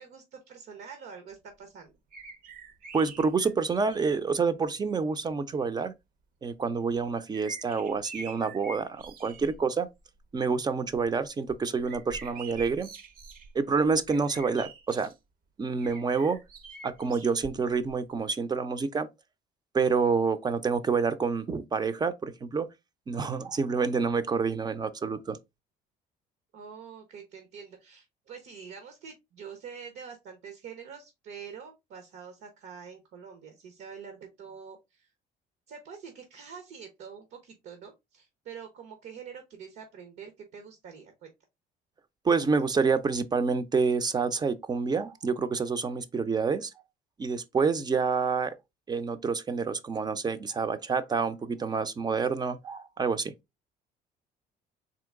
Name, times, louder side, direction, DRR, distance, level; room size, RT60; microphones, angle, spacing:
voice 1, 0.0-1.9 26.5-35.1 35.7-41.3, right 6 dB, 80° right, 0.9 m, -46 dB
sound 1, 2.1-4.2 5.0-5.1 6.7-9.6 10.0-10.4 10.8-15.1 15.8-17.9 18.2-18.3, right 4 dB, 55° right, 0.7 m, -46 dB
voice 2, 2.9-5.9 6.4-9.9 10.3-12.9 13.5-15.1 15.6-16.4 16.8-19.1 19.7-22.7 23.1-25.4 42.2-46.7 47.2-48.5 48.9-53.3, right 5 dB, 25° right, 0.5 m, -28 dB
3.8 x 2.9 x 3.5 m
cardioid pair, 110°, 17 cm